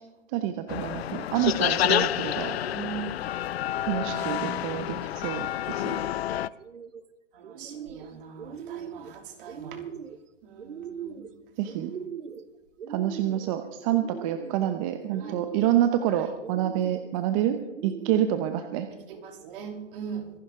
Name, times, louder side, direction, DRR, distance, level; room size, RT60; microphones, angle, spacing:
voice 1, 0.3-2.6 3.9-5.0 5.2-6.0 11.6-11.9 12.9-18.9, right 11 dB, 30° right, 8 dB, 0.9 m, -27 dB
sound 1, 0.7-6.5, left 12 dB, 55° left, 0.6 m, -29 dB
voice 2, 2.6-3.3 4.0-6.1 7.3-9.8 10.4-11.3 11.6-11.7 15.1-15.3 16.1-16.4 19.1-20.3, right 7 dB, 45° right, 3 dB, 3.3 m, -41 dB
sound 2, 6.5-7.0 7.4-8.1 8.4-9.1 9.5-10.2 10.6-11.3 11.7-12.5 12.8-13.5 13.9-14.6 15.1-15.9 16.4-17.1 17.6-18.4, right 7 dB, 85° right, 1.2 m, -40 dB
25.5 x 11.5 x 3.7 m, 1.1 s
hypercardioid pair, 145°, 37 cm